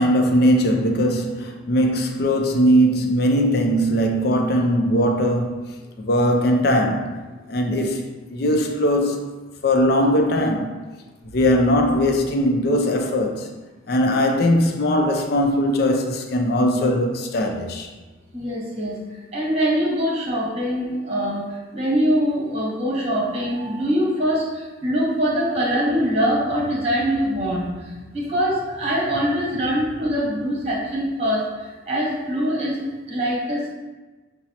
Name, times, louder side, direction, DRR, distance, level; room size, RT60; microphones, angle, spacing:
voice 1, 0.0-5.6 6.0-7.1 7.5-9.3 9.6-10.7 11.3-13.5 13.9-17.9, equal, 55° left, 0.4 m, -20 dB
voice 2, 18.3-18.9 19.3-33.7, equal, 35° right, 1.0 m, -23 dB
5.9 x 2.0 x 2.8 m
head